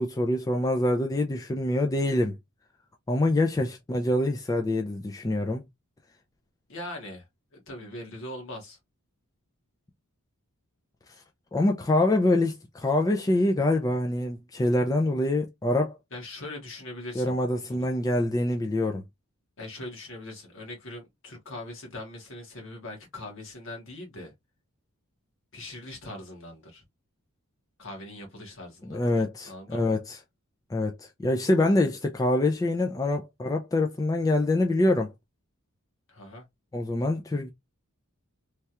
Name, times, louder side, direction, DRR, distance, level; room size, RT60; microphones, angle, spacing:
voice 1, 0.0-2.4 3.1-5.6 11.5-16.0 17.1-19.0 28.8-30.2 30.7-35.1 36.7-37.5, left 1 dB, 15° left, 0.3 m, -25 dB
voice 2, 6.7-7.3 7.5-8.8 16.1-17.3 17.7-17.9 19.6-24.3 25.5-26.8 27.8-29.1 29.5-30.0 36.1-36.5, left 1 dB, 60° left, 1.3 m, -41 dB
3.2 x 2.3 x 2.7 m
head